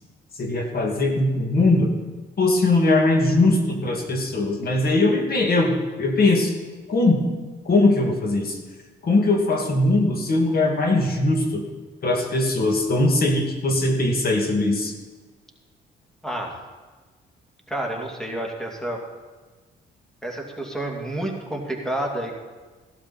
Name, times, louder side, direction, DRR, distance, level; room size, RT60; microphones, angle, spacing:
voice 1, 0.4-1.9 2.4-6.5 6.9-7.2 7.7-8.6 9.0-11.6 12.0-14.9, left 2 dB, 50° left, 2 dB, 2.3 m, -20 dB
voice 2, 16.2-16.6 17.7-19.0 20.2-22.3, right 1 dB, 5° left, 0 dB, 2.5 m, -29 dB
16.0 x 12.0 x 4.3 m, 1.3 s
cardioid pair, 90°, 20 cm